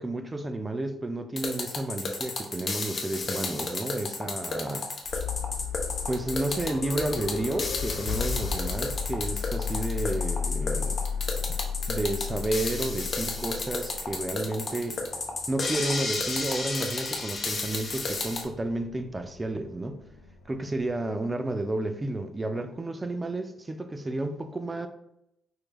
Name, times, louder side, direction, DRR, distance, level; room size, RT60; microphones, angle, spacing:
voice 1, 0.0-4.9 6.1-11.0 11.9-15.0 15.5-20.0 20.5-24.9, right 2 dB, 20° right, 0.4 m, -31 dB
sound 1, 1.4-18.4, left 3 dB, 40° left, 0.8 m, -32 dB
sound 2, 5.1-21.0, left 6 dB, 90° left, 0.4 m, -35 dB
4.7 x 3.1 x 2.3 m
cardioid pair, 90°, 0 cm